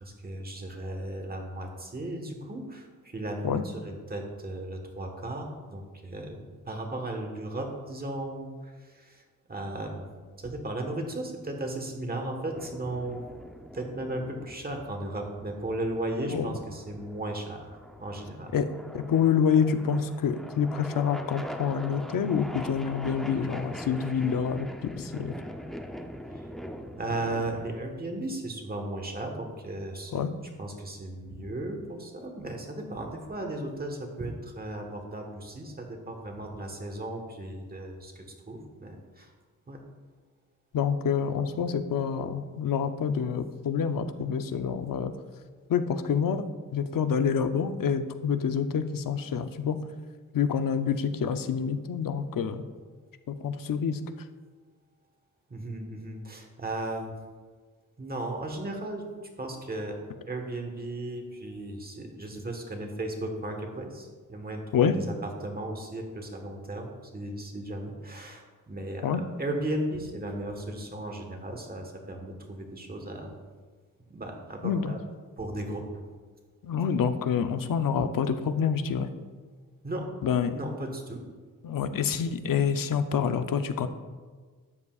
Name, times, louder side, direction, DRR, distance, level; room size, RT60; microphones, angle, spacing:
voice 1, 0.0-6.4 6.7-9.2 9.5-10.1 10.4-13.2 13.7-18.5 27.0-30.2 30.6-39.3 39.7-39.8 55.5-57.1 58.0-59.1 59.4-60.0 60.3-73.3 74.1-75.0 75.4-75.8 79.8-80.1 80.5-81.2, right 1 dB, 25° right, 3 dB, 1.4 m, -36 dB
sound 1, 12.5-27.8, equal, ahead, 0.5 m, -42 dB
voice 2, 18.9-24.7 25.0-25.4 30.1-30.3 40.7-45.1 45.7-46.5 46.7-49.8 50.3-52.6 53.3-54.0 64.7-65.0 69.0-69.2 74.6-74.9 76.6-79.1 80.2-80.6 81.6-83.9, left 7 dB, 75° left, 9 dB, 0.7 m, -27 dB
13.0 x 9.7 x 2.4 m, 1.5 s
wide cardioid pair, 150°, 34 cm